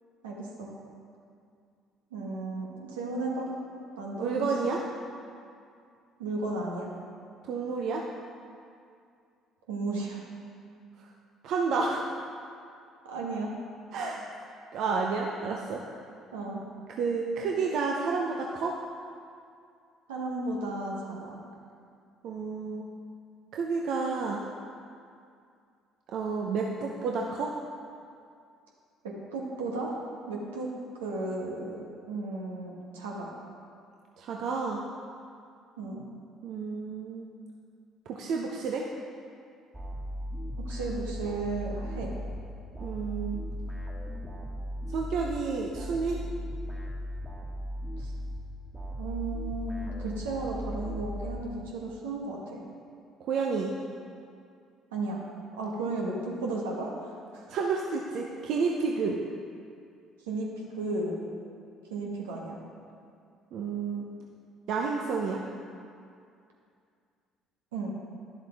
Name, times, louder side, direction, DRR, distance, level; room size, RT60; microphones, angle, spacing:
voice 1, 0.2-0.7 2.1-3.5 4.0-4.5 6.2-6.9 9.7-10.2 13.0-13.5 16.3-16.6 20.1-21.3 29.3-29.9 30.3-30.7 31.0-33.3 35.8-36.1 40.6-42.1 48.0-48.1 49.0-52.6 54.9-55.2 55.6-57.1 57.3-57.4 60.3-61.2 61.9-62.6 67.7-67.9, right 2 dB, 85° right, -2 dB, 1.3 m, -34 dB
voice 2, 4.2-4.8 7.4-8.0 11.4-12.0 13.9-14.2 14.7-15.8 17.0-18.7 22.2-22.9 23.5-24.5 26.1-27.5 34.2-34.8 36.4-37.3 38.1-38.8 42.8-43.4 44.9-46.2 53.3-53.7 57.5-59.2 63.5-64.1 64.7-65.4, right 4 dB, 60° right, -1 dB, 0.7 m, -30 dB
sound 1, 39.7-51.9, equal, 20° right, 1.8 m, -37 dB
11.0 x 7.3 x 3.5 m, 2.4 s
hypercardioid pair, 55°, 0 cm